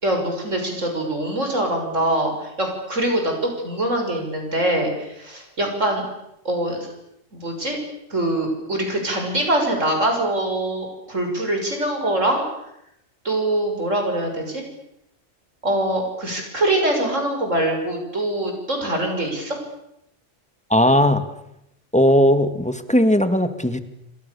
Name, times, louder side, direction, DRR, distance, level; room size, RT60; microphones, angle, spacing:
voice 1, 0.0-6.1 6.5-6.8 7.3-7.8 8.1-12.4 13.3-14.6 15.6-19.6, right 1 dB, 80° right, 3 dB, 6.8 m, -23 dB
voice 2, 20.7-21.2 21.9-23.8, equal, 5° left, 9 dB, 1.9 m, -17 dB
29.5 x 25.5 x 7.0 m, 0.81 s
omnidirectional pair, 1.3 m